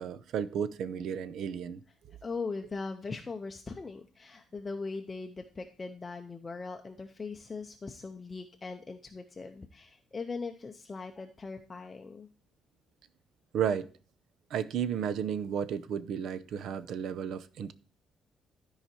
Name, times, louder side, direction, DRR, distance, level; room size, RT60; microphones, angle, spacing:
voice 1, 0.0-1.8 2.1-2.2 13.5-13.9 14.5-17.7, right 8 dB, 65° right, 0.6 m, -33 dB
voice 2, 2.2-12.3, left 4 dB, 20° left, 0.6 m, -40 dB
12.5 x 4.9 x 4.3 m
cardioid pair, 175°, 0 cm